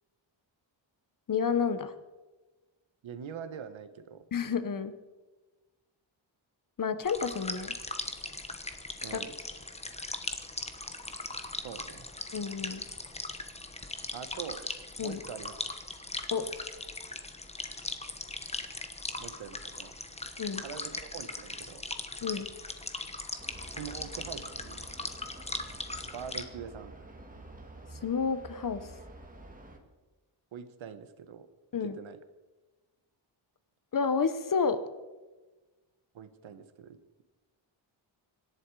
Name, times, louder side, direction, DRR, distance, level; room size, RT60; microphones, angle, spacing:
voice 1, 1.3-1.9 4.3-4.9 6.8-7.7 9.1-9.2 12.3-12.8 15.0-15.2 16.3-16.5 20.4-20.6 22.2-22.5 28.0-28.9 31.7-32.0 33.9-34.8, left 6 dB, 40° left, 11 dB, 1.1 m, -30 dB
voice 2, 3.0-4.2 9.0-9.4 11.6-12.1 14.1-14.6 15.0-15.5 19.2-19.9 20.6-21.8 23.7-24.9 26.1-26.9 30.5-31.5 31.8-32.2 36.1-37.0, right 7 dB, 75° right, 11 dB, 1.4 m, -43 dB
sound 1, 7.0-26.4, left 2 dB, 15° left, 1.1 m, -39 dB
sound 2, 23.4-29.8, right 1 dB, 15° right, 2.0 m, -49 dB
25.0 x 11.0 x 4.8 m, 1.2 s
wide cardioid pair, 160°, 47 cm